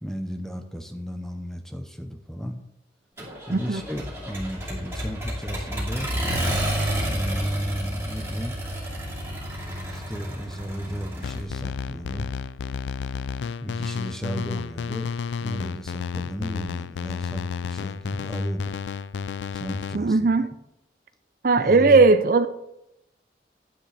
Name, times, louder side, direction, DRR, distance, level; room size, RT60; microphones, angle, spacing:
voice 1, 0.0-2.6 3.5-6.1 7.0-8.6 9.9-12.3 13.6-15.1 15.4-18.8 19.5-20.2 21.5-22.0, equal, 5° left, 6 dB, 0.8 m, -34 dB
Accelerating revving vroom, 3.2-11.4, equal, 15° right, 2.5 m, -30 dB
voice 2, 3.5-3.8 19.9-20.5 21.4-22.5, right 3 dB, 50° right, 11 dB, 0.4 m, -18 dB
sound 1, 11.2-20.0, left 6 dB, 80° left, 0.3 m, -32 dB
10.5 x 9.1 x 3.4 m, 0.86 s
head